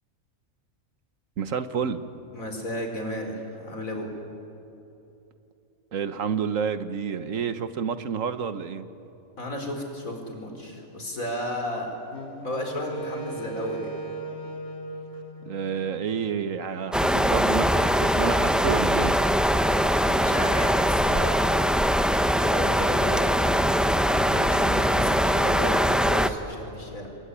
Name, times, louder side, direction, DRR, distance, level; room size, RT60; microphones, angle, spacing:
voice 1, 1.4-2.0 5.9-8.9 15.4-19.2, right 6 dB, 75° right, 12 dB, 1.5 m, -29 dB
voice 2, 2.3-4.1 9.4-11.9 12.4-13.9 20.0-21.5 22.2-23.6 24.1-27.1, left 1 dB, 90° left, 3 dB, 4.8 m, -33 dB
Wind instrument woodwind instrument, 12.1-16.3, right 3 dB, 55° left, 2.3 m, -38 dB
sound 1, 16.9-26.3, equal, ahead, 0.6 m, -22 dB
28.0 x 21.5 x 9.9 m, 2.9 s
omnidirectional pair, 1.4 m